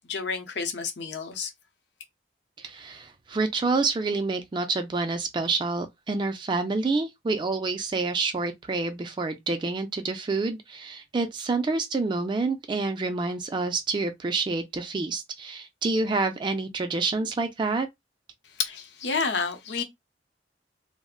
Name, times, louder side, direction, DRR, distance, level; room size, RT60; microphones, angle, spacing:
voice 1, 0.1-1.5 18.6-19.8, left 5 dB, 70° left, 0.7 m, -29 dB
voice 2, 2.6-17.9, right 3 dB, 25° right, 0.3 m, -28 dB
2.4 x 2.0 x 3.6 m
head